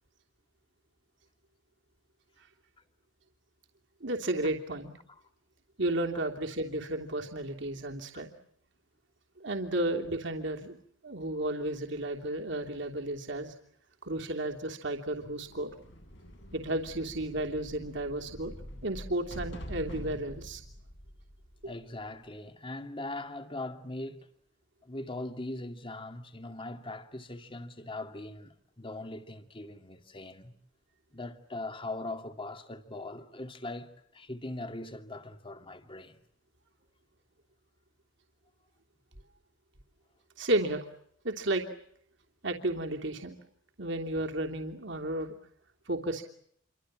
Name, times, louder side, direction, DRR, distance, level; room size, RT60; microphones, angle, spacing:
voice 1, 4.0-4.9 5.8-8.3 9.4-10.8 11.0-13.5 14.0-15.7 16.5-18.5 18.8-20.6 40.4-40.8 41.2-41.6 42.4-43.4 43.8-45.3 45.9-46.2, right 1 dB, 65° right, 3.0 m, -33 dB
sound 1, 15.2-21.9, equal, 70° left, 8.0 m, -45 dB
voice 2, 21.6-24.3 24.8-30.5 31.1-36.2, left 2 dB, 25° left, 2.4 m, -40 dB
28.5 x 25.0 x 7.6 m
head